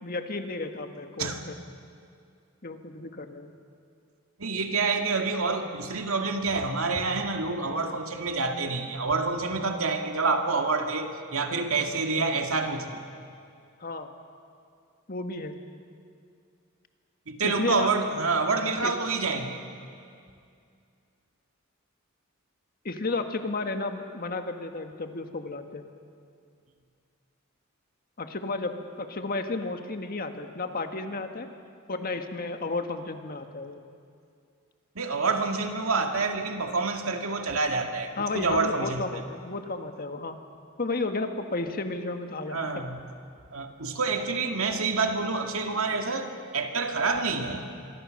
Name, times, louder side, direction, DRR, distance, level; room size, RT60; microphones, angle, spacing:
voice 1, 0.0-1.6 2.6-3.5 13.8-14.1 15.1-15.6 17.4-17.9 18.8-18.9 22.8-25.9 28.2-31.5 31.9-33.8 38.2-40.4 40.8-42.8, left 3 dB, 45° left, 6 dB, 1.6 m, -32 dB
voice 2, 4.4-13.0 17.3-19.6 35.0-39.0 42.5-43.0 43.5-46.3 46.5-47.6, right 4 dB, 85° right, 4 dB, 2.1 m, -27 dB
26.0 x 22.5 x 6.6 m, 2.4 s
head